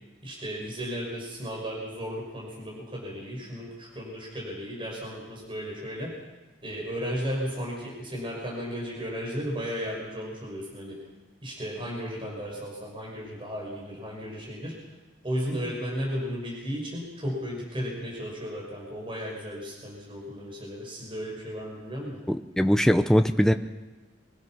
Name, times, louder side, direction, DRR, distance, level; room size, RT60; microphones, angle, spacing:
voice 1, 0.2-6.1 6.6-11.0 11.4-14.7 15.2-22.2, equal, 25° right, -2 dB, 5.9 m, -34 dB
voice 2, 22.3-23.5, equal, 5° left, 7 dB, 0.6 m, -21 dB
24.5 x 18.0 x 6.2 m, 1.2 s
head